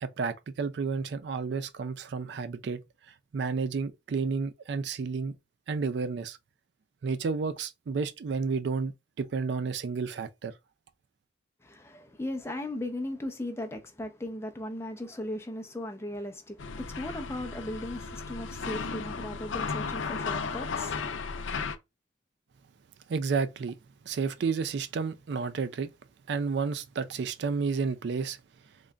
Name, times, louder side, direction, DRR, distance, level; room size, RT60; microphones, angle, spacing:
voice 1, 0.0-2.8 3.3-5.4 5.7-6.4 7.0-10.5 23.1-23.8 24.1-25.9 26.3-28.4, right 5 dB, 65° right, 0.3 m, -31 dB
voice 2, 11.6-21.1, left 1 dB, 15° left, 0.6 m, -37 dB
sound 1, 16.6-21.8, left 5 dB, 85° left, 0.5 m, -35 dB
3.8 x 3.2 x 2.3 m
head